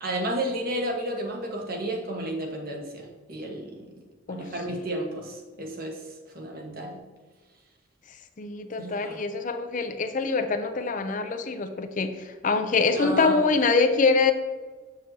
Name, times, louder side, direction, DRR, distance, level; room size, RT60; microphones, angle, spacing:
voice 1, 0.0-3.9 4.3-6.0 6.3-7.0 8.8-9.2 12.9-13.4, right 1 dB, 50° right, 0 dB, 1.3 m, -32 dB
voice 2, 4.3-4.8 8.4-14.3, left 4 dB, 40° left, 8 dB, 0.5 m, -25 dB
7.3 x 6.4 x 2.8 m, 1.3 s
head